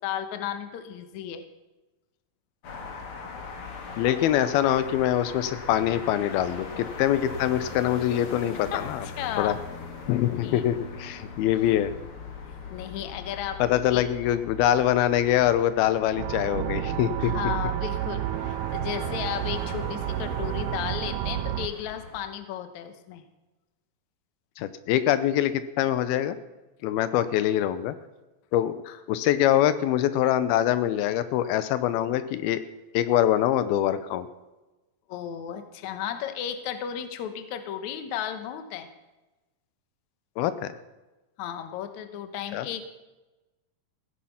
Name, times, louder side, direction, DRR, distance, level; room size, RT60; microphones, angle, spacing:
voice 1, 0.0-1.4 8.7-9.6 10.4-10.7 12.7-13.6 13.9-14.0 17.2-23.2 28.9-29.0 35.1-38.9 41.4-42.8, left 10 dB, 65° left, 9 dB, 2.1 m, -34 dB
sound 1, 2.6-22.2, left 4 dB, 45° left, 2.1 m, -41 dB
voice 2, 4.0-9.1 9.4-9.5 10.1-12.0 13.6-17.3 24.6-25.5 25.8-26.4 26.8-28.0 28.5-28.8 29.1-32.6 32.9-34.3 40.4-40.7 42.5-42.7, left 12 dB, 85° left, 13 dB, 2.7 m, -24 dB
sound 2, 16.2-21.7, right 13 dB, 90° right, 1.8 m, -30 dB
16.5 x 10.0 x 5.8 m, 1.1 s
omnidirectional pair, 4.3 m